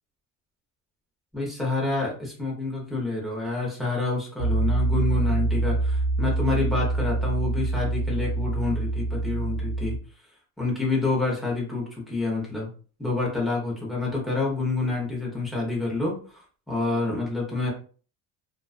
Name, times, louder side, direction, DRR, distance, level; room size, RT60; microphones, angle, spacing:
voice 1, 1.3-10.0 10.6-12.7 13.0-17.7, left 3 dB, ahead, -4 dB, 0.8 m, -28 dB
Piano, 4.4-10.0, right 2 dB, 60° right, 0.5 m, -25 dB
2.4 x 2.3 x 2.4 m, 0.39 s
cardioid pair, 150°, 36 cm